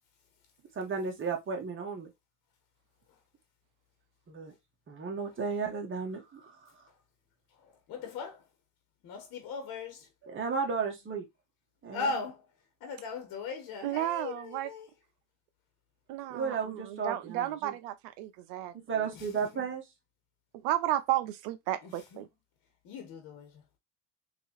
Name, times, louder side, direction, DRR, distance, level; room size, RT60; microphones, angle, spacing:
voice 1, 0.7-2.1 4.3-4.5 4.9-6.8 10.2-11.3 11.8-12.1 16.3-17.7 18.7-19.8, right 5 dB, 30° right, 1.6 m, -34 dB
voice 2, 7.5-8.5 9.0-10.1 11.9-12.4 12.8-14.9 19.1-19.7 21.8-22.3 22.8-23.6, left 4 dB, 60° left, 1.3 m, -39 dB
voice 3, 13.8-14.7 16.1-19.0 20.6-22.3, right 13 dB, 75° right, 0.7 m, -33 dB
3.5 x 3.1 x 2.9 m
supercardioid pair, 85°, 37 cm